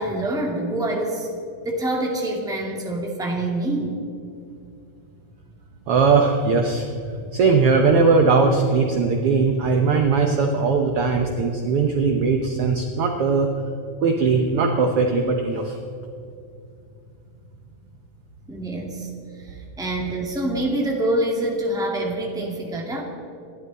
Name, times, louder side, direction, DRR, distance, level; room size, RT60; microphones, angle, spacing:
voice 1, 0.0-1.4 1.6-4.0 18.5-19.1 19.4-23.0, right 1 dB, ahead, -1 dB, 1.8 m, -26 dB
voice 2, 5.9-13.5 14.0-15.7, right 4 dB, 65° right, 3 dB, 1.6 m, -19 dB
28.0 x 12.0 x 4.2 m, 2.5 s
omnidirectional pair, 3.5 m